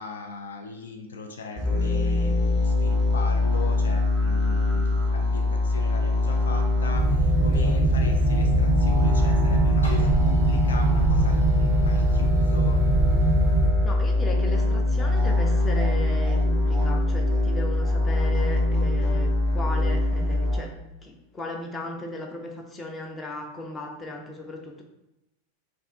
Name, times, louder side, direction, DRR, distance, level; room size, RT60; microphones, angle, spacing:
voice 1, 0.0-12.8, left 3 dB, 65° left, 3 dB, 0.4 m, -38 dB
sound 1, 1.6-20.6, left 2 dB, 45° left, 1.1 m, -23 dB
sound 2, 6.9-13.7, right 3 dB, 35° right, 0.3 m, -23 dB
sound 3, 9.8-15.6 16.1-16.2, left 3 dB, 85° left, 1.3 m, -45 dB
voice 2, 13.8-24.8, left 2 dB, 15° left, 2 dB, 0.6 m, -36 dB
3.3 x 2.6 x 3.4 m, 0.89 s
figure-of-eight pair, 90°, 0 cm